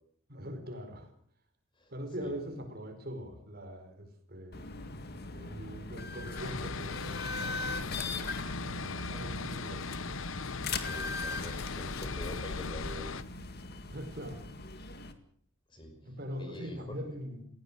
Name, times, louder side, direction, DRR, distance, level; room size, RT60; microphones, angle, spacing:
voice 1, 0.3-1.1 1.9-4.7 5.3-10.0 13.9-14.5 16.0-17.5, equal, 50° right, 6 dB, 4.6 m, -42 dB
sound 1, 4.5-15.1, left 3 dB, 50° left, 2.0 m, -40 dB
sound 2, 6.4-13.2, left 4 dB, 75° left, 0.9 m, -39 dB
voice 2, 10.8-13.1 15.7-16.0 16.4-17.0, left 1 dB, 25° left, 5 dB, 5.7 m, -45 dB
18.5 x 16.5 x 9.0 m, 0.62 s
head